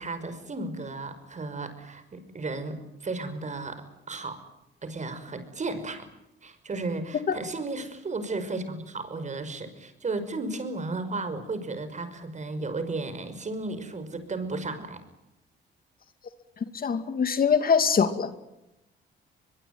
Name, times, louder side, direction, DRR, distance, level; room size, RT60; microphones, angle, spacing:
voice 1, 0.0-4.4 4.8-6.1 6.4-15.0, right 3 dB, 35° right, 11 dB, 5.6 m, -34 dB
voice 2, 16.7-18.3, left 6 dB, 45° left, 10 dB, 2.5 m, -23 dB
23.0 x 23.0 x 9.4 m, 0.89 s
cardioid pair, 90°, 20 cm